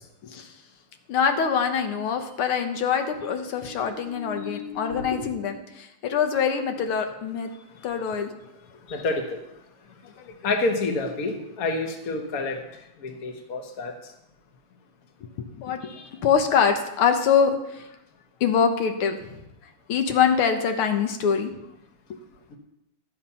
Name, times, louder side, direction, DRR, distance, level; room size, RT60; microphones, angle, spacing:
voice 1, 1.1-7.5 7.8-8.3 10.3-10.4 15.4-15.8 16.2-17.9 18.4-19.2 19.9-21.5 22.1-22.2, left 7 dB, 80° left, 5 dB, 1.9 m, -24 dB
voice 2, 3.7-5.4 8.9-9.4 10.4-12.6 13.0-13.9 15.8-16.1 22.5-22.6, left 3 dB, 45° left, 4 dB, 1.6 m, -29 dB
12.5 x 7.2 x 5.5 m, 0.88 s
omnidirectional pair, 2.3 m